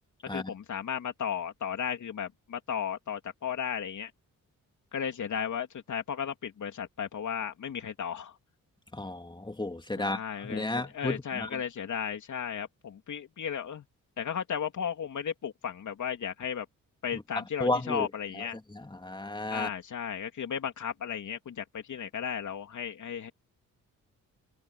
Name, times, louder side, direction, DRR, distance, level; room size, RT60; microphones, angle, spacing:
voice 1, 0.2-4.1 4.9-8.3 10.0-13.8 14.2-16.6 17.0-18.6 19.5-23.3, left 8 dB, 60° left, 3.3 m, -35 dB
voice 2, 8.9-11.5 17.1-17.2 17.6-18.1 19.0-19.7, left 2 dB, 15° left, 3.1 m, -32 dB
cardioid pair, 70°, 33 cm